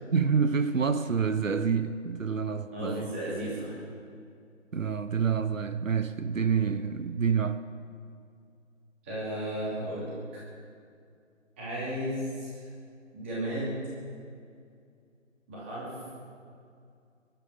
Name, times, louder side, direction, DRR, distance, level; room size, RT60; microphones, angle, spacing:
voice 1, 0.1-3.1 4.7-7.6, right 6 dB, 75° right, 11 dB, 0.9 m, -27 dB
voice 2, 2.7-3.8 9.0-10.1 11.6-12.5 13.1-13.8 15.5-15.9, right 1 dB, 10° right, -8 dB, 2.6 m, -34 dB
21.5 x 11.5 x 5.6 m, 2.3 s
figure-of-eight pair, 175°, 39 cm